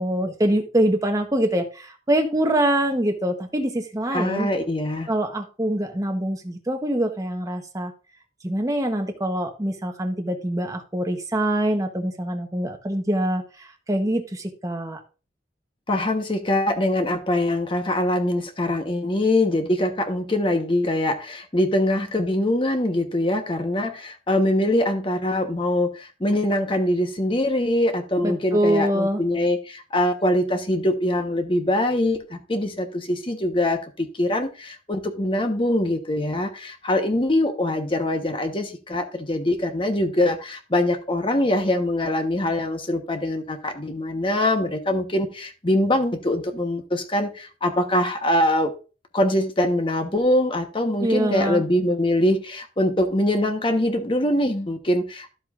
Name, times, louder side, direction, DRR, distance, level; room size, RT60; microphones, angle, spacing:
voice 1, 0.0-4.5 5.1-7.9 8.4-15.0 28.2-29.2 51.0-51.6, right 1 dB, 20° right, 4 dB, 1.0 m, -24 dB
voice 2, 4.1-5.1 15.9-48.7 49.1-55.3, left 1 dB, 30° left, 6 dB, 1.1 m, -23 dB
12.0 x 7.8 x 2.5 m, 0.33 s
head